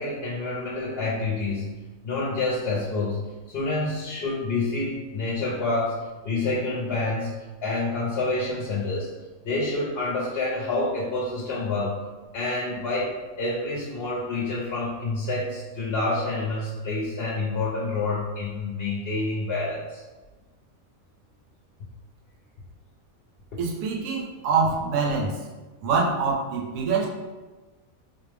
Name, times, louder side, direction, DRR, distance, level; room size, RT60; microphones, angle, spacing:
voice 1, 0.0-1.7 2.0-7.3 7.6-9.1 9.4-12.0 12.3-13.1 13.4-20.0, left 2 dB, 55° left, -6 dB, 0.8 m, -28 dB
voice 2, 23.6-25.4 25.8-27.1, right 4 dB, 70° right, -1 dB, 0.9 m, -25 dB
4.6 x 2.1 x 3.3 m, 1.2 s
omnidirectional pair, 1.5 m